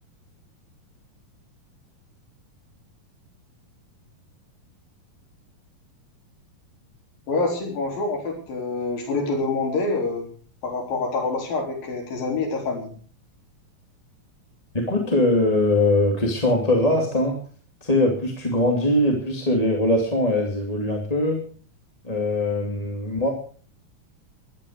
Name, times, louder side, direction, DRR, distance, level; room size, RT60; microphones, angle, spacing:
voice 1, 7.3-10.3 10.6-12.9, left 3 dB, 90° left, 2 dB, 5.6 m, -26 dB
voice 2, 14.7-17.3 17.8-21.4 22.0-23.3, left 1 dB, 10° left, 1 dB, 2.2 m, -21 dB
14.0 x 12.0 x 6.5 m, 0.43 s
omnidirectional pair, 3.9 m